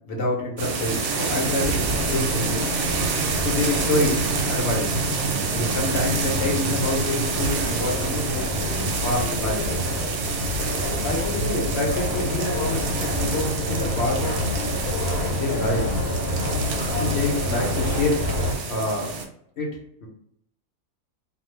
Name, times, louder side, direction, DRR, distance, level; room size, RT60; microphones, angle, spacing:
voice 1, 0.1-2.7 3.4-5.0 5.5-8.5 9.0-9.6 11.0-14.4 15.3-15.9 16.9-18.2 18.7-19.2 19.6-19.7 20.0-20.1, left 2 dB, 55° left, -2 dB, 0.9 m, -27 dB
sound 1, 0.6-19.3, right 4 dB, 90° right, 1.2 m, -28 dB
sound 2, 1.8-18.6, left 1 dB, 75° left, 1.2 m, -28 dB
2.6 x 2.3 x 3.1 m, 0.71 s
omnidirectional pair, 1.7 m